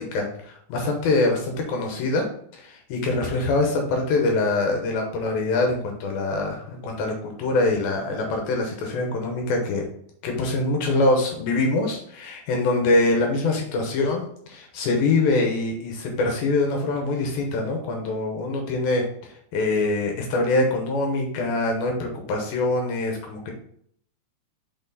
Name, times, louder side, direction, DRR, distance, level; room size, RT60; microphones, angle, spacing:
voice 1, 0.0-2.3 2.5-9.9 10.2-19.0 19.5-23.5, left 2 dB, 75° left, 2 dB, 2.7 m, -24 dB
5.8 x 4.4 x 4.0 m, 0.64 s
omnidirectional pair, 4.3 m